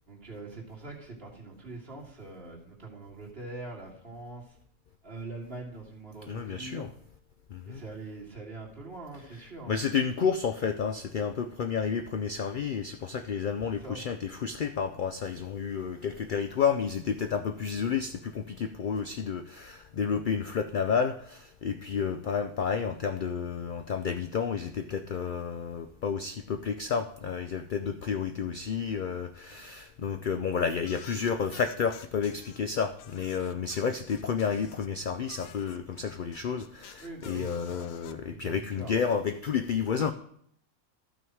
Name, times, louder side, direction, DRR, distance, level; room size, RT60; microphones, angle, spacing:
voice 1, 0.1-4.6 5.0-6.9 7.7-9.8 13.6-14.0 29.5-29.6 33.8-33.9 37.0-39.0, right 3 dB, 45° right, -3 dB, 2.5 m, -43 dB
voice 2, 6.3-6.9 7.5-7.8 9.7-40.1, left 6 dB, 70° left, 8 dB, 0.4 m, -31 dB
sound 1, 30.8-32.6 33.0-34.9 35.3-38.1, left 9 dB, 90° left, 1.1 m, -50 dB
13.0 x 6.0 x 4.7 m, 0.66 s
omnidirectional pair, 1.5 m